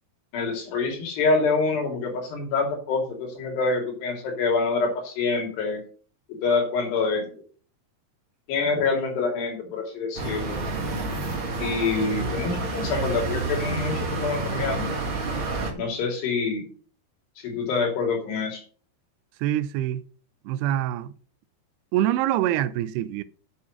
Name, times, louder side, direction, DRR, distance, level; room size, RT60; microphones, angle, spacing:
voice 1, 0.3-5.8 6.4-7.3 8.5-10.6 11.6-14.9 15.7-16.6 17.4-18.6, left 4 dB, 80° left, 5.0 m, -26 dB
sound 1, 10.2-15.7, right 3 dB, 40° right, 2.1 m, -29 dB
voice 2, 19.4-20.0 20.4-21.1 21.9-23.2, right 12 dB, 80° right, 2.6 m, -25 dB
8.3 x 7.1 x 6.4 m
omnidirectional pair, 4.7 m